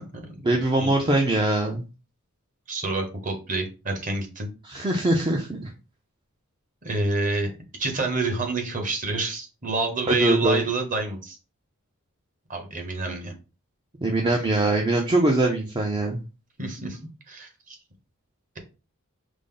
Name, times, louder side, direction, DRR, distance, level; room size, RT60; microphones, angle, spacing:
voice 1, 0.4-1.8 4.6-5.7 10.1-10.7 14.0-16.2, right 2 dB, 20° right, 1 dB, 0.5 m, -22 dB
voice 2, 2.7-4.5 6.8-7.5 7.8-11.4 12.5-13.3 16.6-17.0 17.3-17.8, right 3 dB, 35° right, 3 dB, 1.1 m, -28 dB
5.1 x 2.0 x 3.8 m, 0.32 s
head